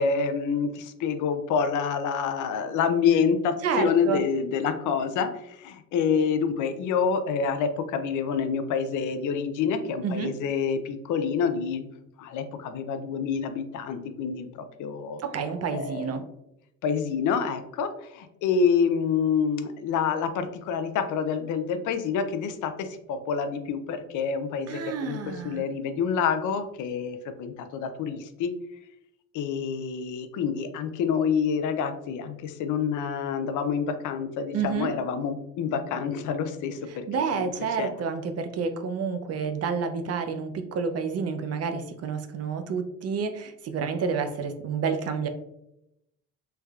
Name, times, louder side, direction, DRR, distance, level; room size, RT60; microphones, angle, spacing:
voice 1, 0.0-11.9 12.2-14.5 14.8-15.2 15.7-16.2 16.8-25.2 25.4-28.5 29.3-37.0 37.3-37.5 37.8-38.0, left 6 dB, 80° left, 9 dB, 0.5 m, -27 dB
voice 2, 3.6-4.2 10.0-10.3 15.2-16.2 24.7-25.6 34.5-34.9 37.1-45.3, right 6 dB, 55° right, 8 dB, 0.5 m, -29 dB
3.3 x 3.2 x 2.3 m, 0.83 s
cardioid pair, 90°, 30 cm